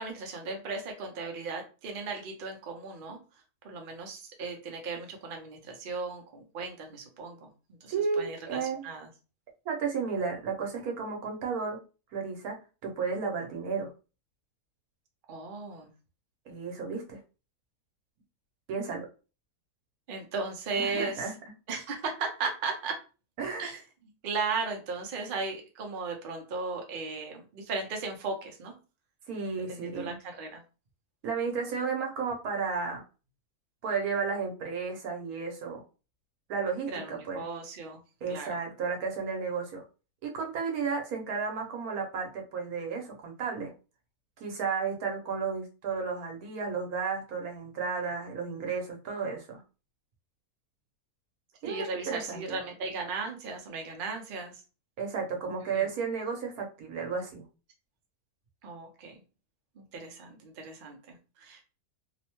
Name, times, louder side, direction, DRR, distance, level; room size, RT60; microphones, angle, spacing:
voice 1, 0.0-3.2 3.6-9.1 15.3-15.9 20.1-21.3 21.7-23.0 23.6-23.8 24.2-28.7 29.7-30.6 36.9-38.0 38.3-38.6 51.6-54.6 55.6-55.9 58.6-59.2 59.8-61.6, right 4 dB, 50° right, 3 dB, 0.6 m, -36 dB
voice 2, 7.9-8.9 9.6-11.8 12.1-12.6 12.8-13.9 16.5-17.2 18.7-19.1 20.7-21.3 23.4-23.7 29.3-30.2 31.2-33.0 33.8-35.8 36.5-37.4 38.2-39.8 40.2-43.7 44.4-49.6 51.6-52.6 55.0-57.4, right 5 dB, 75° right, 2 dB, 1.2 m, -33 dB
3.0 x 2.1 x 2.9 m, 0.33 s
omnidirectional pair, 1.6 m